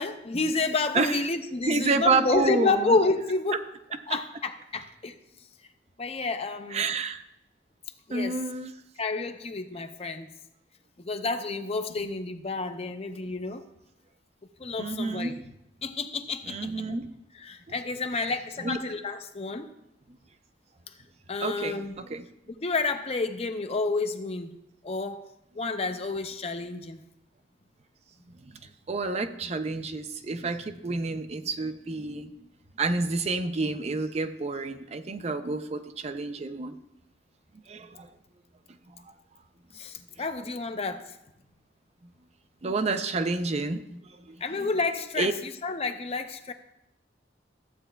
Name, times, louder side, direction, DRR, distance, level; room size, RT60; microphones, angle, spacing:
voice 1, 0.0-3.6 4.1-5.1 6.0-6.9 8.1-8.3 9.0-10.3 11.0-13.6 14.6-15.4 15.8-17.0 17.4-19.7 21.3-21.9 22.6-24.5 24.8-25.2 25.5-27.0 39.7-41.0 44.4-46.5, left 3 dB, 35° left, 8 dB, 0.6 m, -30 dB
voice 2, 1.7-3.0 4.1-4.2 6.7-7.2 8.1-8.7 12.0-12.1 14.8-15.4 16.4-17.1 18.1-18.3 18.6-18.8 21.4-22.2 28.4-28.5 28.9-32.3 32.8-36.8 37.7-38.1 38.9-39.0 42.6-44.7 45.2-45.3, right 3 dB, 35° right, 9 dB, 0.5 m, -29 dB
14.5 x 8.2 x 2.2 m, 0.83 s
head